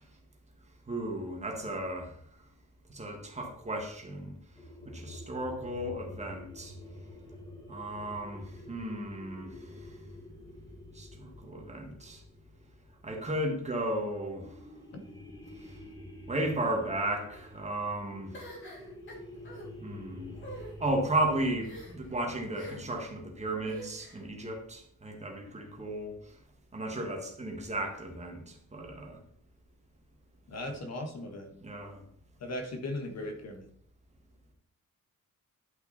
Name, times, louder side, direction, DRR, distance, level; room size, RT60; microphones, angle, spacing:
voice 1, 0.9-2.1 2.9-4.3 4.9-6.7 7.7-9.9 10.9-12.2 13.0-14.5 15.6-15.8 16.3-18.4 19.8-20.3 20.8-26.2 26.7-29.2 31.6-32.0, right 1 dB, 20° right, 2 dB, 1.8 m, -34 dB
sound 1, 4.5-13.6 14.3-23.1, left 1 dB, 15° left, 2.7 m, -48 dB
sound 2, 18.3-19.7 20.3-20.7 21.6-22.1 22.5-23.0 23.6-24.2, right 1 dB, 40° left, 2.8 m, -46 dB
voice 2, 30.5-31.5 32.4-33.7, left 1 dB, 55° left, 5 dB, 1.6 m, -38 dB
11.0 x 5.8 x 4.2 m, 0.66 s
wide cardioid pair, 175°, 30 cm